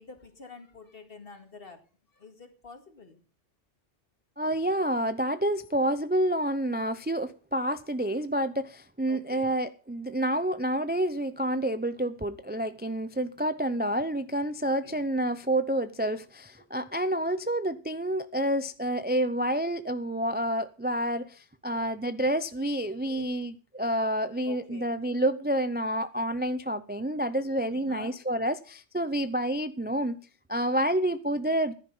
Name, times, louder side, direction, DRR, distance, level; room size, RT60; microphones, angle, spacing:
voice 1, 0.0-3.2 9.1-9.6 14.6-15.1 16.6-16.7 21.7-21.9 23.1-23.3 24.4-24.9 27.7-28.2, left 4 dB, 50° left, 2.3 m, -48 dB
voice 2, 4.4-30.2 30.5-31.7, right 1 dB, 15° right, 0.4 m, -29 dB
15.0 x 10.5 x 5.5 m
omnidirectional pair, 1.3 m